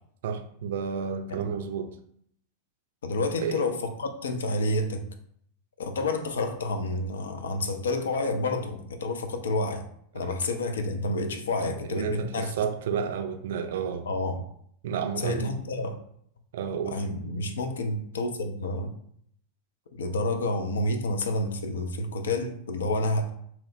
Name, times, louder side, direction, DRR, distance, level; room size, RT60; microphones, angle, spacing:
voice 1, 0.2-2.0 3.4-3.7 10.1-10.3 11.6-14.1 14.8-15.6 16.5-17.1, right 6 dB, 55° right, 5 dB, 0.4 m, -31 dB
voice 2, 3.0-5.0 5.8-9.8 10.1-12.5 14.1-14.4 15.2-15.9 16.9-18.9 19.9-23.3, left 2 dB, 65° left, 6 dB, 0.4 m, -29 dB
2.8 x 2.0 x 3.9 m, 0.66 s
figure-of-eight pair, 90°, 0 cm